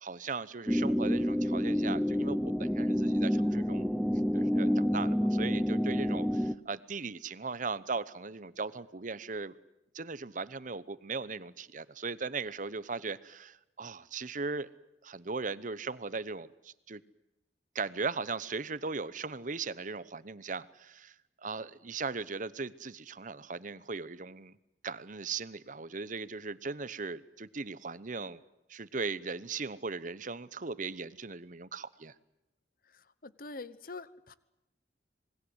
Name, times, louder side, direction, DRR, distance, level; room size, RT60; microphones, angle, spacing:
voice 1, 0.0-3.9 4.3-9.5 9.9-14.7 15.0-17.0 17.7-21.1 21.4-24.5 24.8-28.4 28.7-32.1, right 4 dB, 45° right, 17 dB, 0.9 m, -38 dB
sound 1, 0.7-6.5, equal, ahead, 0.8 m, -28 dB
voice 2, 33.2-34.3, left 3 dB, 55° left, 17 dB, 1.1 m, -44 dB
27.0 x 21.0 x 8.1 m, 0.91 s
head